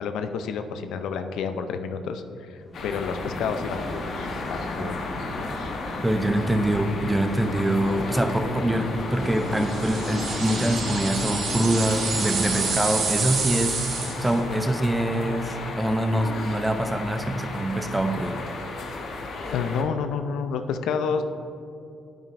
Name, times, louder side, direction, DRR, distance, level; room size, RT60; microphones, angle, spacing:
voice 1, 0.0-5.7 19.5-21.2, left 6 dB, 80° left, 8 dB, 0.4 m, -30 dB
sound 1, 2.6-12.7, left 1 dB, 20° left, 1.4 m, -36 dB
sound 2, 2.7-19.8, left 3 dB, 65° left, 1.0 m, -34 dB
voice 2, 6.0-13.8 14.2-18.4, right 1 dB, 10° right, 7 dB, 0.6 m, -24 dB
sound 3, 9.5-14.4, right 4 dB, 70° right, 1.6 m, -28 dB
8.9 x 8.8 x 2.6 m, 2.6 s
cardioid pair, 90°, 0 cm